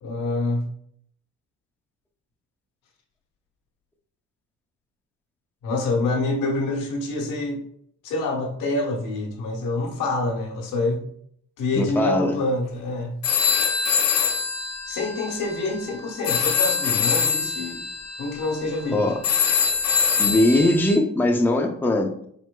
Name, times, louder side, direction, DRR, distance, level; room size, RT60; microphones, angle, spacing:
voice 1, 0.0-0.6 5.6-7.6 8.0-11.0 11.6-13.1 14.9-17.9 18.2-19.1, left 2 dB, 85° left, 0 dB, 1.1 m, -26 dB
voice 2, 11.7-12.4 18.9-19.2 20.2-22.3, left 1 dB, 5° left, 2 dB, 0.5 m, -21 dB
sound 1, 13.2-21.0, left 6 dB, 60° left, 0.7 m, -24 dB
4.4 x 4.4 x 2.2 m, 0.67 s
cardioid pair, 90°, 30 cm